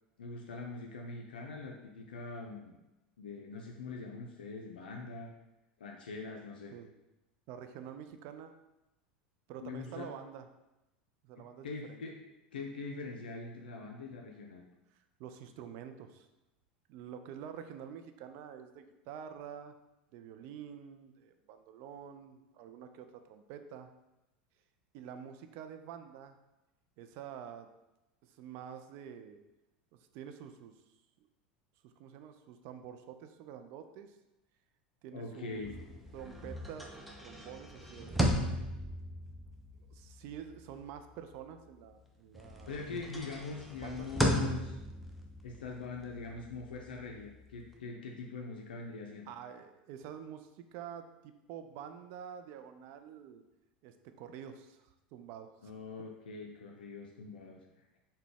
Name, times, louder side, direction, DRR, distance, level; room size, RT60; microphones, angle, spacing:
voice 1, 0.2-2.8 3.2-5.3 5.8-6.7 9.6-10.1 11.4-12.1 12.5-14.6 35.1-35.7 42.7-44.8 45.4-49.3 55.6-57.6, left 4 dB, 80° left, 0 dB, 0.4 m, -43 dB
voice 2, 7.5-8.5 9.5-10.5 11.2-12.0 15.2-16.3 16.9-19.7 20.1-23.9 24.9-26.4 27.0-27.7 28.2-29.4 29.9-30.7 31.8-34.2 35.0-35.6 36.1-38.3 39.7-42.8 43.8-44.1 49.3-53.4 53.8-55.7, right 8 dB, 55° right, 8 dB, 0.3 m, -48 dB
sound 1, 35.5-42.0 42.3-47.7, equal, ahead, 0.5 m, -37 dB
3.8 x 2.1 x 3.4 m, 0.97 s
hypercardioid pair, 85°, 5 cm